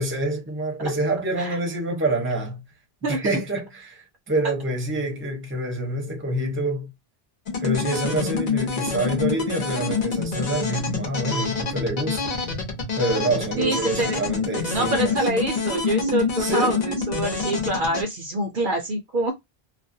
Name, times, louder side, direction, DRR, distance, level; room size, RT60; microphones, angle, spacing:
voice 1, 0.0-2.6 3.1-6.9 7.6-12.3 13.0-15.3 16.4-16.8, right 1 dB, 15° right, 0.7 m, -27 dB
sound 1, 7.5-18.0, left 4 dB, 45° left, 0.8 m, -27 dB
voice 2, 13.6-14.3 14.7-19.3, right 1 dB, 60° right, 0.7 m, -26 dB
2.4 x 2.0 x 2.6 m
omnidirectional pair, 1.1 m